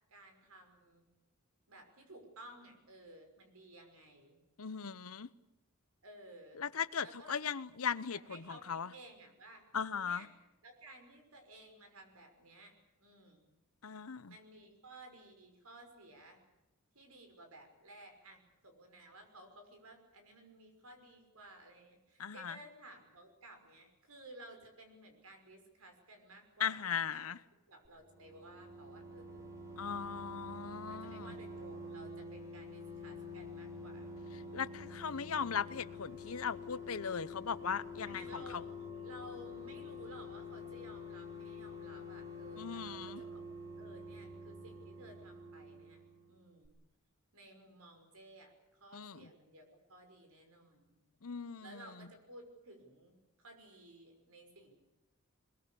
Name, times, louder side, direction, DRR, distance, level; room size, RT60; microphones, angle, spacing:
voice 1, 0.1-1.1 1.7-4.4 6.0-6.6 7.0-7.3 8.1-9.7 10.0-10.3 10.6-12.7 13.0-13.5 14.3-16.4 16.9-27.3 27.7-29.5 30.9-34.1 34.4-34.9 38.1-38.6 39.0-43.4 43.8-46.0 46.3-46.8 47.3-51.0 51.6-54.8, right 1 dB, 85° right, 6.0 m, -56 dB
voice 2, 4.6-5.3 6.6-8.9 9.7-10.2 13.8-14.3 22.2-22.5 26.6-27.4 29.8-31.3 34.5-38.2 42.6-43.2 48.9-49.2 51.2-51.8, left 7 dB, 80° left, 0.9 m, -38 dB
sound 1, 27.8-46.4 46.6-46.7, left 2 dB, 15° right, 3.8 m, -47 dB
22.5 x 22.0 x 8.5 m
head